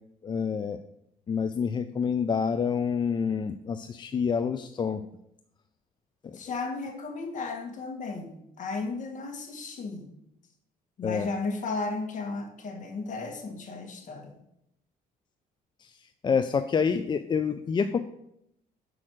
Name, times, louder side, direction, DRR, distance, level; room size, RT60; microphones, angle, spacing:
voice 1, 0.2-0.8 1.3-5.0 6.2-6.4 11.0-11.3 15.8-18.0, left 6 dB, 25° left, 9 dB, 0.4 m, -28 dB
voice 2, 6.3-10.1 11.0-14.3, left 3 dB, 50° left, 2 dB, 1.8 m, -34 dB
6.2 x 4.8 x 6.3 m, 0.78 s
cardioid pair, 110°, 17 cm